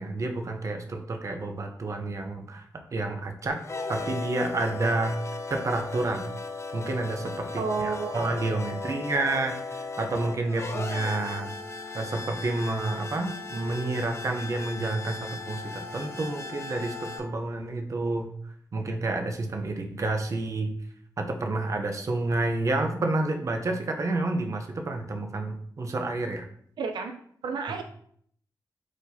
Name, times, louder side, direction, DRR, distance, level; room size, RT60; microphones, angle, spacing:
voice 1, 0.0-3.6 3.9-5.2 5.5-6.3 6.7-11.5 11.9-18.3 18.7-20.7 21.2-26.4, right 2 dB, 45° right, 4 dB, 0.6 m, -29 dB
sound 1, 3.5-17.2, left 3 dB, 35° left, 0.5 m, -37 dB
voice 2, 7.6-8.3 8.6-9.0 26.8-27.1 27.4-27.8, right 5 dB, 80° right, 6 dB, 0.4 m, -31 dB
4.7 x 4.1 x 2.6 m, 0.64 s
wide cardioid pair, 105°, 8 cm